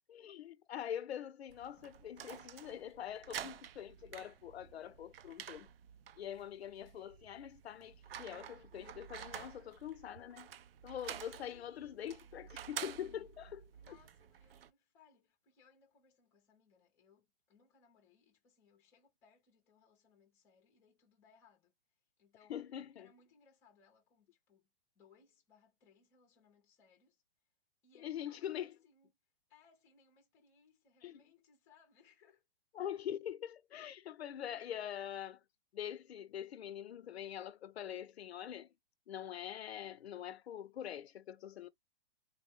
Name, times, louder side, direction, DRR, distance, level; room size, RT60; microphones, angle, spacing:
voice 1, 0.1-5.7 6.2-10.5 10.8-14.0 22.5-23.1 28.0-28.7 31.0-31.2 32.7-35.4 35.7-38.7 39.1-41.7, left 10 dB, 85° left, 0.6 m, -44 dB
sound 1, 1.5-14.7, right 10 dB, 70° right, 0.5 m, -50 dB
voice 2, 11.5-12.6 13.7-21.7 22.2-22.6 23.0-24.7 24.9-27.2 27.8-29.1 29.5-32.4, left 5 dB, 10° left, 0.5 m, -68 dB
3.5 x 2.1 x 3.5 m
hypercardioid pair, 165°, 31 cm